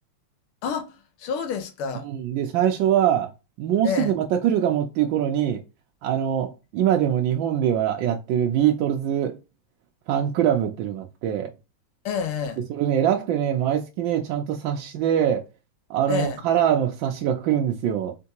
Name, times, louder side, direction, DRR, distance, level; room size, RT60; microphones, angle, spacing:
voice 1, 0.6-0.9 1.2-2.1 3.8-4.2 12.0-12.6 16.1-16.4, left 6 dB, 80° left, 1.7 m, -28 dB
voice 2, 2.0-3.3 3.6-5.6 6.0-9.4 10.1-11.5 12.7-15.4 15.9-18.1, right 10 dB, 70° right, 1.2 m, -23 dB
4.5 x 3.4 x 2.9 m
omnidirectional pair, 2.4 m